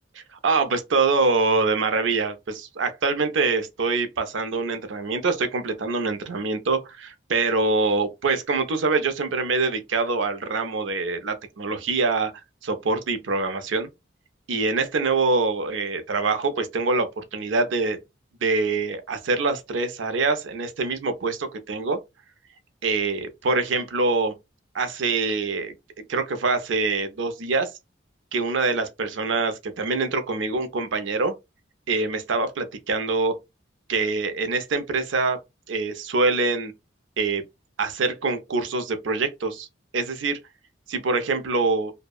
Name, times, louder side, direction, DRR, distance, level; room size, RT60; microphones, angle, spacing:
voice 1, 0.2-12.3 12.6-13.9 14.5-18.0 18.4-22.0 22.8-24.4 24.7-25.7 26.1-27.7 28.3-31.4 31.9-33.3 33.9-35.4 35.7-36.7 37.2-37.4 37.8-39.7 39.9-40.4 40.9-41.9, right 3 dB, 90° right, 0.5 m, -24 dB
2.7 x 2.1 x 2.3 m
head